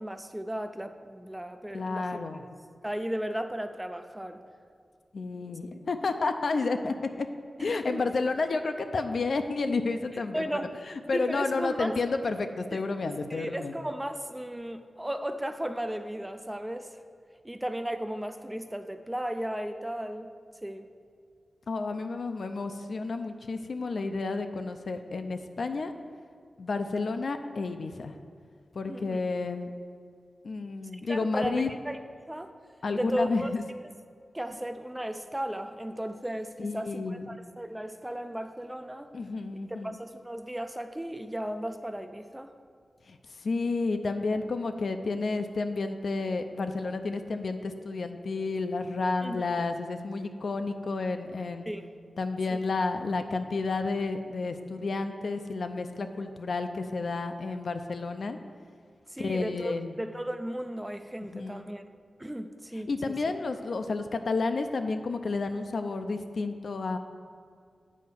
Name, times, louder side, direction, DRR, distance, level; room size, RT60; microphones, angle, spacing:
voice 1, 0.0-2.2 2.8-4.4 7.7-8.0 10.3-10.7 11.1-12.0 12.7-17.0 17.4-20.3 20.6-20.9 28.9-29.2 31.1-32.0 32.3-32.5 32.9-33.5 34.3-39.1 39.7-42.5 49.2-49.4 51.7-51.9 52.5-52.6 59.1-61.8 62.2-63.2, right 1 dB, 10° right, 8 dB, 0.4 m, -35 dB
voice 2, 1.7-2.4 5.1-7.3 7.6-10.5 11.1-13.7 21.7-25.9 26.6-28.1 28.7-29.7 30.4-31.7 32.8-33.6 36.6-37.4 39.1-40.0 43.1-51.7 52.2-58.4 59.2-59.9 61.2-61.7 62.9-67.0, left 3 dB, 60° left, 7 dB, 0.5 m, -31 dB
8.5 x 4.4 x 6.9 m, 2.2 s
wide cardioid pair, 130°, 0 cm